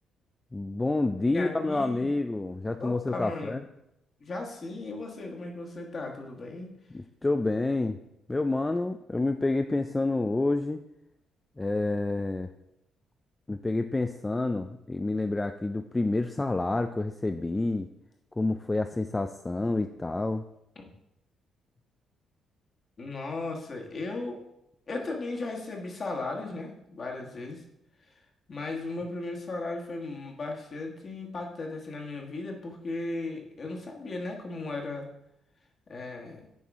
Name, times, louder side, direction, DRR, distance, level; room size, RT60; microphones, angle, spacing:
voice 1, 0.5-3.6 6.9-8.0 8.3-10.8 11.6-12.5 13.5-17.9 18.4-20.4, left 2 dB, 15° left, 7 dB, 0.4 m, -28 dB
voice 2, 1.3-2.1 2.8-3.6 4.2-6.7 23.0-24.4 24.9-27.6 28.5-35.1 35.9-36.5, left 2 dB, 45° left, 1 dB, 1.5 m, -36 dB
9.1 x 4.8 x 3.6 m, 0.83 s
cardioid pair, 90°, 0 cm